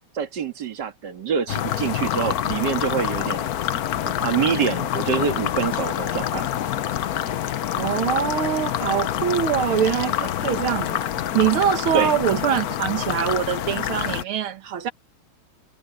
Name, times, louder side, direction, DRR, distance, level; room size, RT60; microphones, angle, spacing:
voice 1, 0.1-3.5 4.1-6.5 11.9-12.1, right 7 dB, 55° right, 2.4 m, -25 dB
sound 1, 1.5-14.2, left 11 dB, 60° left, 1.0 m, -26 dB
voice 2, 7.8-14.9, right 9 dB, 80° right, 2.1 m, -24 dB
omnidirectional pair, 2.3 m